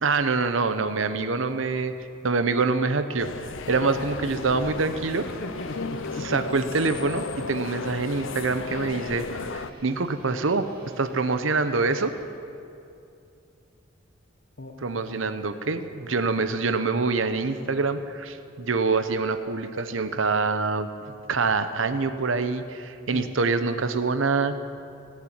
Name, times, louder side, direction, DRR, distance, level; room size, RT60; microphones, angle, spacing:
voice 1, 0.0-1.9 2.2-3.3 3.7-5.3 6.2-9.2 9.5-10.7 11.0-12.1 14.8-20.9 21.3-24.6, right 4 dB, 75° right, 10 dB, 0.8 m, -25 dB
sound 1, 3.2-9.7, left 4 dB, 75° left, 0.6 m, -34 dB
sound 2, 3.9-12.3, right 1 dB, 50° right, 2.7 m, -51 dB
voice 2, 5.2-6.4 14.6-15.2 21.0-21.2 23.1-23.3, left 2 dB, 55° left, 1 dB, 1.0 m, -37 dB
18.5 x 7.5 x 8.8 m, 2.6 s
head